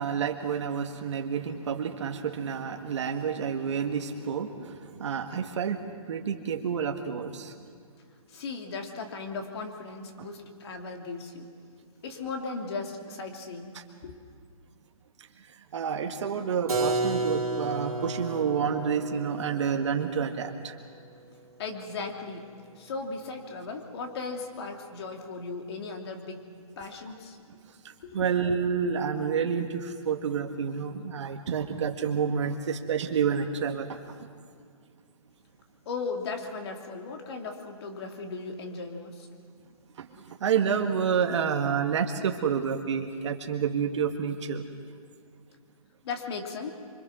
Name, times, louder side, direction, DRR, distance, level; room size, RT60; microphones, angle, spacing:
voice 1, 0.0-7.5 10.2-10.3 15.2-20.8 27.8-34.0 40.0-44.6, right 7 dB, 55° right, 4 dB, 1.7 m, -29 dB
voice 2, 8.3-11.5 12.0-14.2 21.6-22.5 22.7-26.4 26.8-27.4 28.0-28.3 35.8-39.3 46.0-46.7, left 4 dB, 45° left, 3 dB, 3.2 m, -37 dB
Keyboard (musical), 16.7-22.3, right 3 dB, 80° right, 3.6 m, -33 dB
26.0 x 25.5 x 6.2 m, 2.2 s
hypercardioid pair, 155°, 18 cm